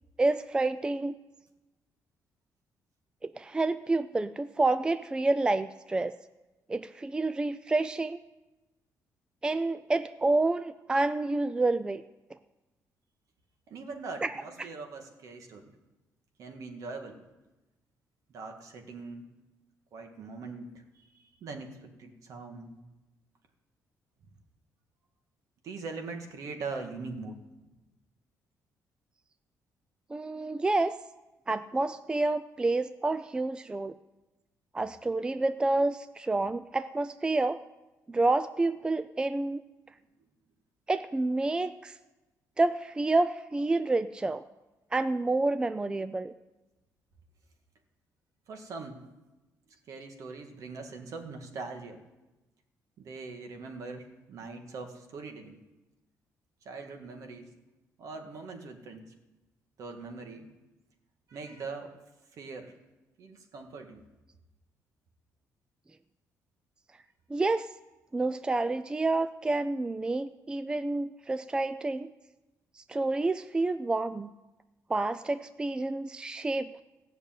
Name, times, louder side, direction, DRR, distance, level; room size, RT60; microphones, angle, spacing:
voice 1, 0.2-1.1 3.2-6.1 6.7-8.2 9.4-12.0 14.2-14.3 14.6-14.7 30.1-30.9 31.5-33.9 34.7-37.6 38.1-39.6 40.9-42.0 42.6-44.4 44.9-46.3 67.3-67.7 68.1-72.1 72.8-74.3 74.9-76.8, right 2 dB, 15° right, 13 dB, 0.4 m, -29 dB
voice 2, 13.7-15.8 16.4-17.2 18.3-19.3 19.9-22.8 25.6-27.4 48.5-49.0 49.9-52.0 53.0-55.6 56.7-57.5 58.0-59.0 59.8-60.5 61.3-61.9 62.3-62.7 63.2-64.0, right 4 dB, 60° right, 5 dB, 2.0 m, -42 dB
15.5 x 6.7 x 9.1 m, 1.1 s
cardioid pair, 130°, 6 cm